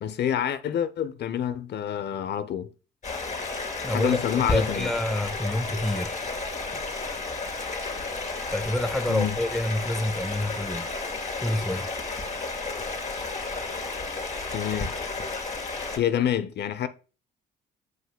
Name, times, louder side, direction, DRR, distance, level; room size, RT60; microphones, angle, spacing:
voice 1, 0.0-2.7 3.9-4.9 9.1-9.3 14.5-14.9 16.0-16.9, left 9 dB, 55° left, 0.7 m, -27 dB
Stream, 3.0-16.0, left 3 dB, 35° left, 2.4 m, -32 dB
voice 2, 3.8-6.2 8.5-10.9 11.4-11.9, left 1 dB, ahead, 0.7 m, -28 dB
7.8 x 5.6 x 2.2 m
hypercardioid pair, 60°, 21 cm